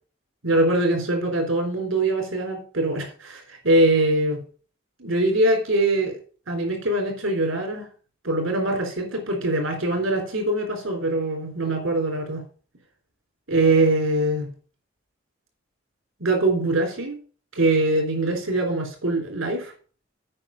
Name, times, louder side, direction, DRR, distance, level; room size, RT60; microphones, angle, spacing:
voice 1, 0.4-4.4 5.0-6.2 6.5-7.9 8.2-12.4 13.5-14.5 16.2-17.2 17.6-19.7, right 2 dB, 75° right, 2 dB, 3.7 m, -23 dB
8.7 x 5.1 x 7.0 m, 0.41 s
head